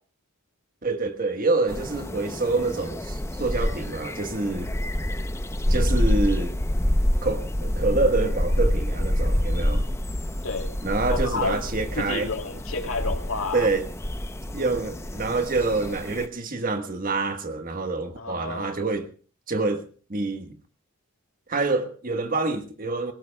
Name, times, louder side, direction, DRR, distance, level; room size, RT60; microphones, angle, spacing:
voice 1, 0.8-4.7 5.7-6.5 7.2-9.8 10.8-12.3 13.5-13.9 14.5-19.1 19.5-19.8 20.1-20.5 21.5-23.1, right 3 dB, 40° right, 1.4 m, -26 dB
sound 1, 1.7-16.3, equal, 15° left, 0.7 m, -27 dB
voice 2, 10.4-10.8 11.1-11.6 11.9-13.7 18.2-18.8, left 4 dB, 75° left, 2.7 m, -30 dB
26.0 x 17.5 x 2.3 m
head